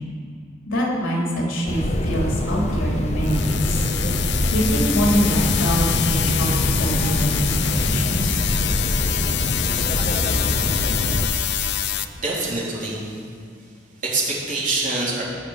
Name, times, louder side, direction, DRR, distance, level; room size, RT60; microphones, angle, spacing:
voice 1, 0.7-3.8 4.5-7.6 7.8-8.5, equal, 85° left, -3 dB, 3.4 m, -24 dB
sound 1, 1.7-11.3, left 1 dB, 35° left, 1.0 m, -24 dB
sound 2, 3.2-12.1, left 11 dB, 60° left, 0.6 m, -26 dB
voice 2, 11.2-11.8 12.2-13.2 14.0-15.2, right 2 dB, 40° right, -5 dB, 3.5 m, -26 dB
19.0 x 6.7 x 7.3 m, 2.2 s
head